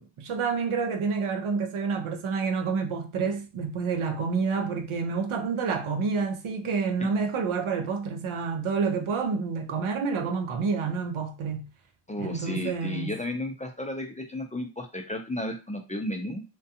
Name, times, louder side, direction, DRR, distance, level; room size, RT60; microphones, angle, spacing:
voice 1, 0.0-11.7 12.2-13.1, right 5 dB, 80° right, 0.6 m, -28 dB
voice 2, 12.1-16.4, left 1 dB, 15° left, 0.3 m, -33 dB
2.4 x 2.2 x 2.7 m
wide cardioid pair, 80°, 48 cm